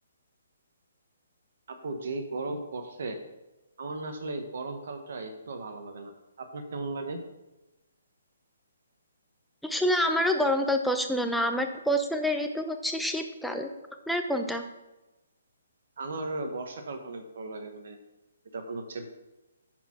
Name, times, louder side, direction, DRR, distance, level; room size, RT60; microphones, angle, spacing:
voice 1, 1.7-3.2 3.8-7.2 16.0-18.0 18.5-19.1, right 2 dB, 65° right, 6 dB, 1.1 m, -36 dB
voice 2, 9.6-13.7 14.1-14.6, equal, ahead, 4 dB, 0.7 m, -27 dB
10.0 x 4.6 x 5.8 m, 1.0 s
hypercardioid pair, 155°, 0 cm